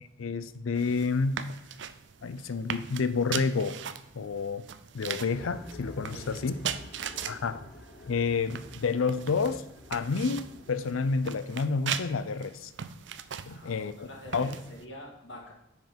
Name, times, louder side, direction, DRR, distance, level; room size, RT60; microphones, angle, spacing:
voice 1, 0.2-1.4 2.2-3.8 4.1-4.6 4.9-6.5 7.3-7.7 8.1-12.7 13.5-14.1 14.3-14.5, left 4 dB, 90° left, 13 dB, 0.5 m, -29 dB
sound 1, 0.7-14.8, right 8 dB, 65° right, 0.5 m, -40 dB
sound 2, 5.2-11.1, left 1 dB, 45° left, 1.0 m, -49 dB
voice 2, 6.1-6.6 7.1-7.4 13.5-15.5, left 1 dB, 65° left, 0 dB, 2.0 m, -46 dB
9.3 x 4.8 x 5.1 m, 0.89 s
head